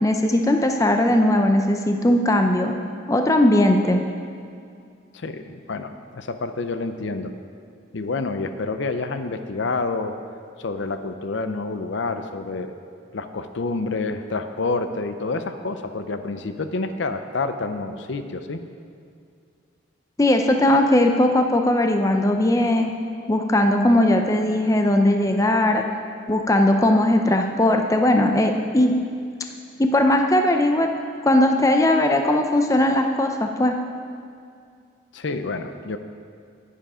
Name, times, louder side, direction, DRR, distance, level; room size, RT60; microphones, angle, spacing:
voice 1, 0.0-2.7 3.1-4.0 20.2-22.9 23.3-25.8 26.3-29.0 29.8-30.9 31.2-33.7, left 1 dB, 15° left, 4 dB, 0.5 m, -19 dB
voice 2, 5.1-7.3 7.9-10.1 10.6-12.7 13.1-18.6 35.1-36.0, left 3 dB, 65° left, 9 dB, 0.6 m, -28 dB
10.5 x 10.0 x 4.9 m, 2.3 s
head